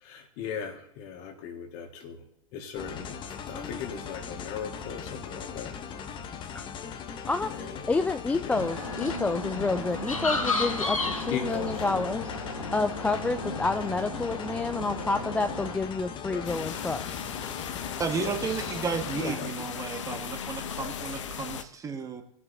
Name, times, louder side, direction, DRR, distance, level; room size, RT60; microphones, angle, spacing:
voice 1, 0.0-2.2 2.5-5.8 7.5-7.8 8.4-8.7 11.3-12.1 16.3-16.5 18.2-18.7 19.1-20.2, left 7 dB, 45° left, 6 dB, 1.7 m, -38 dB
sound 1, 2.7-19.4, left 7 dB, 30° left, 1.0 m, -39 dB
voice 2, 3.5-3.8 6.5-6.7 7.3-12.4 12.7-17.3 19.2-19.4, left 3 dB, 5° left, 9 dB, 0.3 m, -29 dB
sound 2, 8.5-15.8, left 3 dB, 85° left, 1.4 m, -33 dB
sound 3, 16.4-21.6, left 8 dB, 65° left, 0.8 m, -37 dB
voice 3, 18.0-22.2, right 6 dB, 20° right, 7 dB, 1.1 m, -33 dB
19.0 x 8.4 x 2.7 m, 0.75 s
figure-of-eight pair, 90°, 17 cm